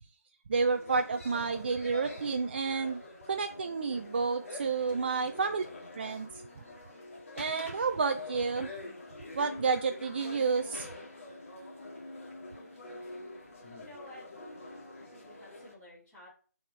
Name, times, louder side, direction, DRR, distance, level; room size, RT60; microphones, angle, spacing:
sound 1, 0.5-15.7, left 2 dB, 50° left, 2.0 m, -46 dB
voice 1, 0.5-3.0 3.3-5.6 6.0-6.4 7.3-8.7 9.3-10.9, right 4 dB, 35° right, 7 dB, 0.4 m, -30 dB
voice 2, 13.8-14.3 15.0-16.3, left 1 dB, 5° left, -16 dB, 3.6 m, -52 dB
8.1 x 4.2 x 3.3 m, 0.39 s
figure-of-eight pair, 155°, 9 cm